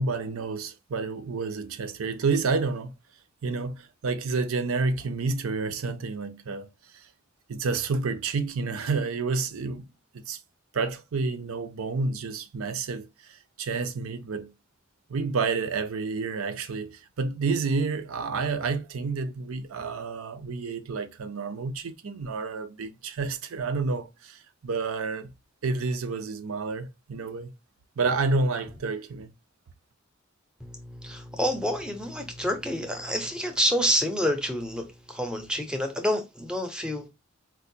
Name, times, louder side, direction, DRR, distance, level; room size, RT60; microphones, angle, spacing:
voice 1, 0.0-2.9 3.4-6.7 7.5-9.8 10.3-10.4 10.7-14.5 15.1-25.3 25.6-27.5 28.0-29.3, right 4 dB, 85° right, 0.5 m, -29 dB
voice 2, 30.6-37.1, equal, 5° right, 0.5 m, -28 dB
4.5 x 2.1 x 2.6 m
head